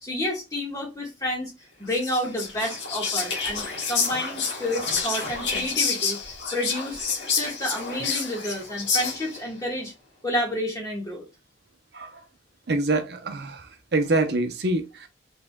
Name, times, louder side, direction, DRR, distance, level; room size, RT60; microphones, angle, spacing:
voice 1, 0.0-1.5 1.8-9.9 10.2-11.3, left 1 dB, 20° left, 1.6 m, -30 dB
Whispering, 1.9-9.4, left 5 dB, 75° left, 1.2 m, -29 dB
voice 2, 12.7-15.1, right 2 dB, 60° right, 0.6 m, -25 dB
4.0 x 3.7 x 2.3 m
head